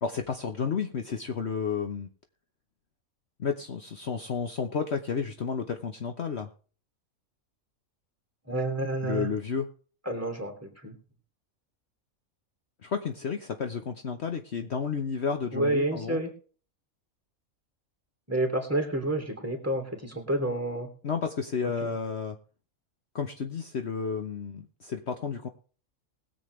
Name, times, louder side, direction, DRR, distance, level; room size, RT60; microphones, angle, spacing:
voice 1, 0.0-2.1 3.4-6.5 9.0-9.7 12.8-16.2 21.0-22.4 23.1-25.5, left 6 dB, 55° left, 6 dB, 1.2 m, -31 dB
voice 2, 8.5-9.3 10.1-10.9 15.5-16.3 18.3-20.9 21.6-21.9, right 1 dB, 10° right, 2 dB, 2.9 m, -29 dB
21.0 x 7.8 x 3.2 m, 0.40 s
omnidirectional pair, 1.5 m